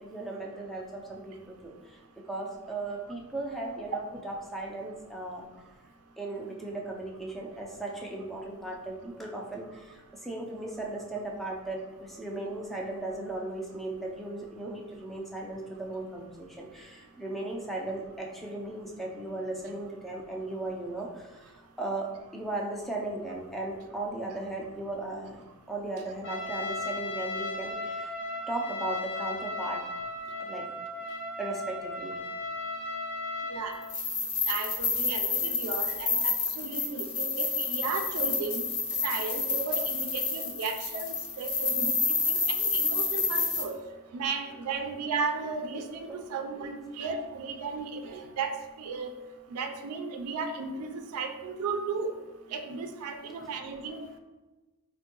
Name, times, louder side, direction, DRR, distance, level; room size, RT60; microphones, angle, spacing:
voice 1, 0.0-1.7 2.3-5.5 6.2-28.1 28.5-29.8 30.4-30.6 31.4-32.2 33.3-33.4 46.1-46.2, right 2 dB, ahead, -2 dB, 0.4 m, -37 dB
Trumpet, 26.2-33.9, left 2 dB, 55° left, 0.6 m, -36 dB
sound 1, 33.8-43.6, left 4 dB, 75° left, 0.9 m, -29 dB
voice 2, 34.5-38.6 39.0-43.8 44.1-49.1 49.5-52.1 52.5-54.2, right 4 dB, 90° right, 6 dB, 0.4 m, -35 dB
4.3 x 2.1 x 2.9 m, 1.2 s
head